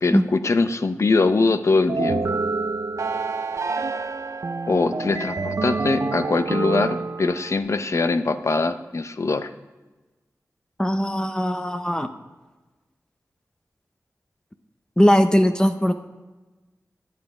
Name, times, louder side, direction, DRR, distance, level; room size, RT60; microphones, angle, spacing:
voice 1, 0.0-2.4 4.7-9.5, left 3 dB, 60° left, 10 dB, 0.7 m, -22 dB
sound 1, 1.9-7.6, right 4 dB, 60° right, 0.6 m, -27 dB
voice 2, 10.8-12.1 15.0-15.9, equal, 15° left, 6 dB, 0.7 m, -19 dB
11.0 x 8.3 x 4.8 m, 1.2 s
wide cardioid pair, 70°, 6 cm